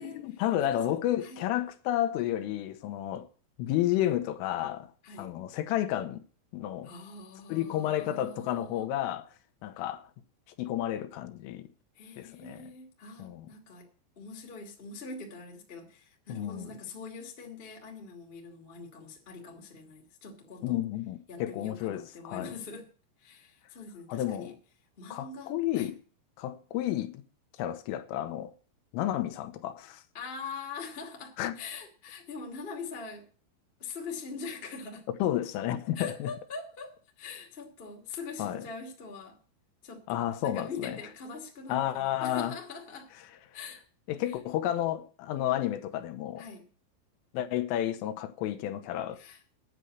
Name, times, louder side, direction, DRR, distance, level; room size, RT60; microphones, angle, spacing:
voice 1, 0.0-3.3 3.6-4.9 5.2-6.2 6.5-6.9 7.5-9.3 9.6-10.1 10.6-11.7 12.2-12.7 13.2-13.5 16.3-16.7 20.6-22.5 24.1-24.6 25.1-26.0 26.4-27.2 27.6-28.5 28.9-30.0 31.4-31.5 35.2-36.3 38.4-38.6 40.1-41.0 41.7-42.6 44.1-46.4 47.3-49.2, left 12 dB, 90° left, 3.5 m, -31 dB
voice 2, 0.6-0.9 1.2-1.4 5.0-5.3 6.8-8.9 11.9-13.9 14.1-20.8 21.3-22.9 23.2-24.5 25.0-25.9 30.1-33.2 33.8-35.1 35.9-39.4 39.8-43.1 43.5-43.8 46.4-46.6 49.1-49.4, left 4 dB, 55° left, 0.6 m, -43 dB
9.9 x 7.8 x 8.2 m
omnidirectional pair, 5.8 m